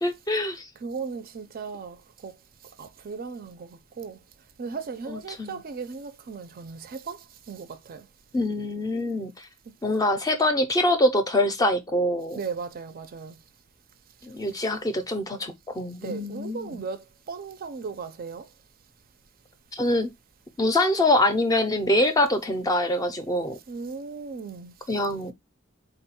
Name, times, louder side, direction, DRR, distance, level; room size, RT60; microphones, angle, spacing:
voice 1, 0.0-0.7 5.1-5.6 8.3-9.3 9.8-12.4 14.2-16.8 19.7-20.1 20.6-23.6 24.9-25.3, left 1 dB, 15° left, 0.5 m, -24 dB
voice 2, 0.8-2.3 2.8-4.2 4.6-8.1 9.7-9.8 12.4-13.4 16.0-18.5 23.7-24.7, right 5 dB, 45° right, 0.4 m, -37 dB
3.8 x 2.3 x 4.1 m
head